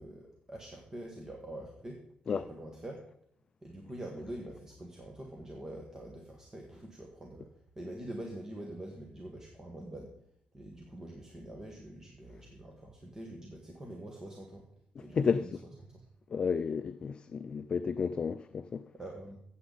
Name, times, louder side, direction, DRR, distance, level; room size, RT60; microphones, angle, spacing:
voice 1, 0.0-3.0 3.6-7.5 7.7-10.1 10.5-14.6 15.0-15.5 15.8-16.0 18.9-19.4, right 1 dB, 20° right, 1.4 m, -45 dB
voice 2, 15.1-15.5 16.3-18.8, left 6 dB, 35° left, 0.3 m, -31 dB
15.0 x 7.8 x 4.0 m
cardioid pair, 150°, 3 cm